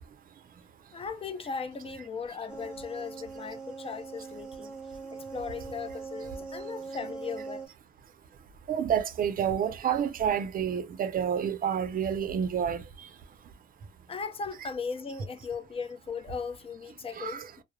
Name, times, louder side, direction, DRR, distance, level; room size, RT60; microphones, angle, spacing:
voice 1, 0.9-4.7 5.1-7.7 14.1-17.6, left 5 dB, 30° left, 0.5 m, -38 dB
sound 1, 2.5-7.7, right 4 dB, 5° right, 1.1 m, -41 dB
voice 2, 8.7-13.1 14.6-14.7 17.2-17.5, right 8 dB, 45° right, 0.5 m, -29 dB
2.3 x 2.0 x 3.0 m
cardioid pair, 90°, 20 cm